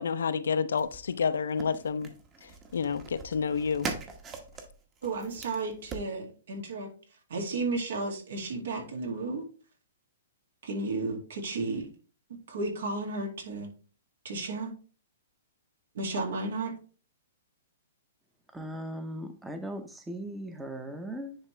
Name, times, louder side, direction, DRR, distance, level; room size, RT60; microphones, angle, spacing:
voice 1, 0.0-2.1 2.4-3.9, left 6 dB, 80° left, 0.5 m, -29 dB
sound 1, 0.8-6.1, right 4 dB, 20° right, 1.1 m, -41 dB
voice 2, 5.0-6.9 7.3-9.4 10.6-11.9 12.3-13.7 14.2-14.7 15.9-16.8, right 3 dB, 70° right, 2.3 m, -33 dB
voice 3, 18.5-21.4, right 1 dB, 5° right, 0.8 m, -38 dB
9.9 x 3.6 x 3.3 m
hypercardioid pair, 145°, 0 cm